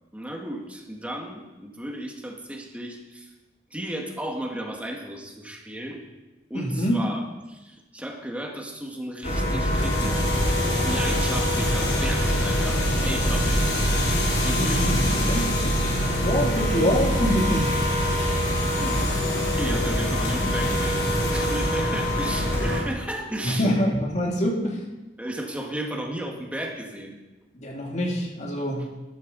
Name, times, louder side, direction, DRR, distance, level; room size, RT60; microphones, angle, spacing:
voice 1, 0.1-3.3 3.7-6.0 6.5-10.3 10.8-13.7 14.4-14.9 18.6-23.7 25.2-27.2, right 1 dB, 10° right, 1 dB, 1.6 m, -34 dB
voice 2, 6.5-7.0 14.5-14.9 15.3-15.5 16.2-17.7 23.4-24.8 27.5-28.9, equal, 40° left, -1 dB, 2.3 m, -25 dB
sound 1, 9.2-22.8, left 1 dB, 70° left, 3.8 m, -24 dB
sound 2, 10.5-18.1, right 2 dB, 80° right, 0.5 m, -31 dB
13.0 x 11.5 x 4.0 m, 1.1 s
head